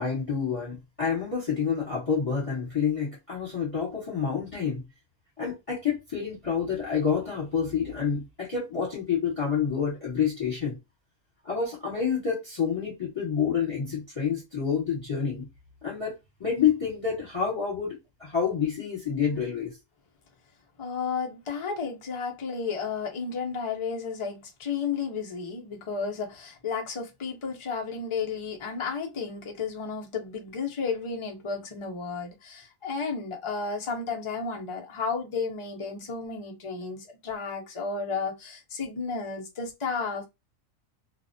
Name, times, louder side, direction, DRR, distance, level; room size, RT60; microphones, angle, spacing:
voice 1, 0.0-4.8 5.4-10.8 11.4-15.5 15.8-19.8, left 7 dB, 25° left, 1.1 m, -28 dB
voice 2, 20.8-40.2, left 5 dB, 55° left, 0.3 m, -33 dB
2.4 x 2.0 x 2.6 m
omnidirectional pair, 1.4 m